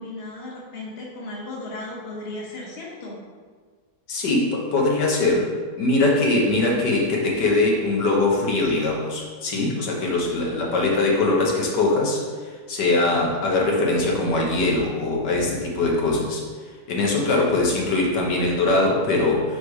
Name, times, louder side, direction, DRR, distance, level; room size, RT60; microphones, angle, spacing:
voice 1, 0.0-3.2 17.2-17.6, left 2 dB, 40° left, -3 dB, 1.2 m, -36 dB
voice 2, 4.1-5.5 5.8-12.2 12.7-16.4 16.9-19.6, left 2 dB, 85° left, -2 dB, 1.8 m, -21 dB
5.0 x 4.8 x 4.8 m, 1.5 s
omnidirectional pair, 1.8 m